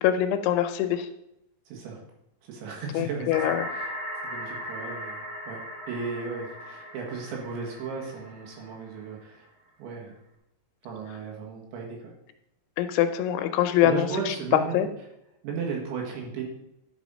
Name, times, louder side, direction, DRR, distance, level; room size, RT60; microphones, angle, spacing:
voice 1, 0.0-1.1 2.9-3.7 12.8-14.4 14.7-14.9, left 11 dB, 80° left, 8 dB, 2.8 m, -24 dB
voice 2, 1.7-2.0 2.4-3.3 3.7-3.9 4.2-9.5 9.8-10.2 10.8-12.1 13.8-14.8 15.4-16.4, right 5 dB, 75° right, -1 dB, 3.9 m, -35 dB
sound 1, 3.3-9.0, equal, 40° right, 1.1 m, -38 dB
11.0 x 5.5 x 5.2 m, 0.84 s
omnidirectional pair, 5.5 m